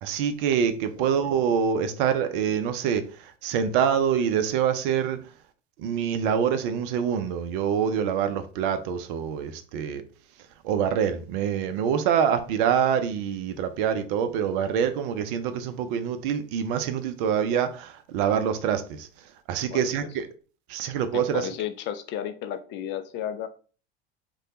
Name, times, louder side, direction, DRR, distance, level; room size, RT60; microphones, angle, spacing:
voice 1, 0.0-3.1 3.4-5.2 5.8-10.0 10.6-19.1 19.5-20.2 20.7-21.5, right 8 dB, 60° right, 0.6 m, -25 dB
voice 2, 1.0-1.6 19.7-19.9 21.1-23.5, left 10 dB, 40° left, 0.4 m, -33 dB
3.2 x 2.3 x 2.9 m
hypercardioid pair, 90°, 30 cm